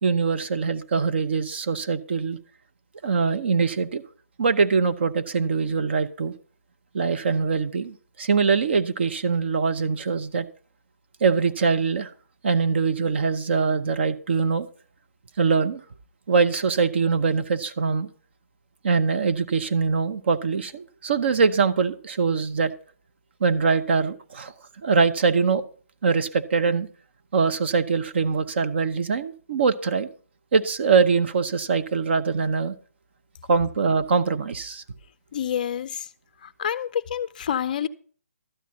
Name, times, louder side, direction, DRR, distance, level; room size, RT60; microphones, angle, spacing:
voice 1, 0.0-2.4 3.0-4.0 4.4-6.3 6.9-10.5 11.2-12.1 12.4-14.7 15.4-15.8 16.3-18.1 18.8-22.7 23.4-24.5 24.8-25.6 26.0-26.9 27.3-30.1 30.5-32.7 33.5-34.8, right 5 dB, 45° right, 0.8 m, -23 dB
voice 2, 35.3-36.1 36.4-37.9, left 9 dB, 35° left, 0.5 m, -28 dB
12.5 x 9.2 x 4.2 m
figure-of-eight pair, 150°, 8 cm